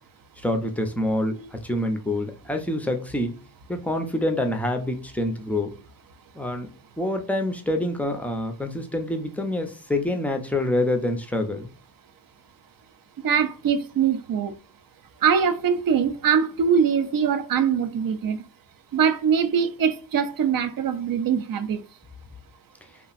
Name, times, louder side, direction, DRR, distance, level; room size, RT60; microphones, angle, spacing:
voice 1, 0.4-3.4 3.7-5.7 6.3-6.7 7.0-11.7, left 1 dB, 5° left, 0.5 m, -26 dB
voice 2, 13.2-14.5 15.2-18.4 18.9-21.8, right 7 dB, 50° right, 0.5 m, -22 dB
2.9 x 2.5 x 2.4 m
cardioid pair, 100°, 45 cm